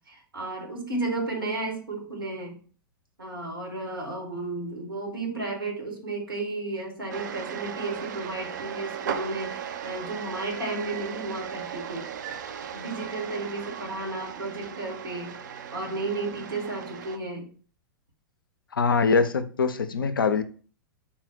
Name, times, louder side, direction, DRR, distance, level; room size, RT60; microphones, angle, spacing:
voice 1, 0.1-2.6 3.2-12.1 12.7-15.4 15.7-17.5, right 2 dB, 80° right, 1.2 m, -33 dB
sound 1, 7.1-17.2, right 8 dB, 55° right, 0.4 m, -37 dB
voice 2, 18.7-20.4, left 5 dB, 75° left, 0.4 m, -23 dB
3.6 x 2.0 x 4.3 m
figure-of-eight pair, 100°, 12 cm